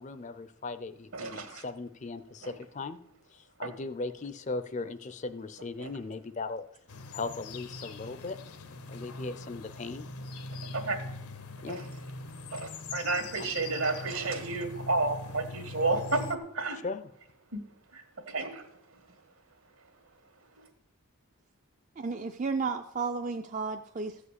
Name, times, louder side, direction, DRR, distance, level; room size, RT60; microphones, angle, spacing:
voice 1, 0.0-3.0 3.3-6.6 7.1-8.4 8.9-10.1 11.6-11.9 16.8-17.1, left 3 dB, 30° left, 11 dB, 0.5 m, -38 dB
voice 2, 1.1-1.6 2.4-2.5 3.6-3.7 5.8-5.9 10.7-11.0 11.6-11.8 12.5-16.8 17.5-17.6 17.9-18.6, right 3 dB, 70° right, 6 dB, 1.8 m, -31 dB
sound 1, 6.9-16.4, left 3 dB, 85° left, 1.0 m, -42 dB
voice 3, 22.0-24.3, right 4 dB, 35° right, 6 dB, 0.4 m, -33 dB
14.5 x 5.0 x 8.2 m, 0.78 s
head